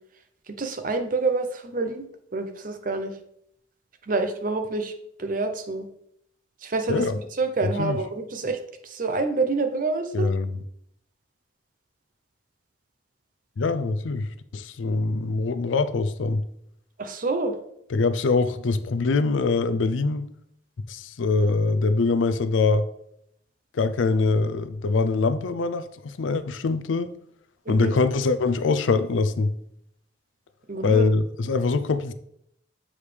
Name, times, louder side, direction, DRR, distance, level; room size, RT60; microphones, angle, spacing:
voice 1, 0.6-2.1 2.3-3.1 4.1-4.9 5.2-5.9 6.6-7.0 7.4-10.3 17.0-17.5 27.7-27.9 30.7-31.0, right 3 dB, 45° right, 0.6 m, -27 dB
voice 2, 7.6-8.0 10.1-10.5 13.6-16.4 17.9-20.3 20.9-22.9 23.7-27.1 27.7-29.5 30.8-32.1, left 3 dB, 85° left, 0.5 m, -23 dB
7.0 x 4.9 x 3.3 m
head